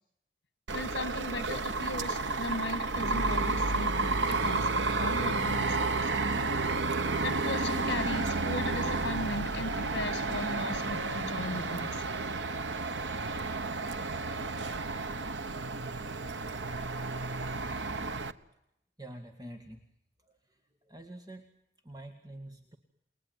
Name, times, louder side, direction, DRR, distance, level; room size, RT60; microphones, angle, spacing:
voice 1, 0.7-6.1 7.2-12.1 17.3-17.6, left 2 dB, 70° left, 1.7 m, -37 dB
sound 1, 0.7-18.3, right 3 dB, 85° right, 1.2 m, -31 dB
voice 2, 19.0-19.8 20.9-21.4 21.8-22.8, right 1 dB, 20° right, 2.0 m, -46 dB
29.5 x 21.0 x 9.5 m
head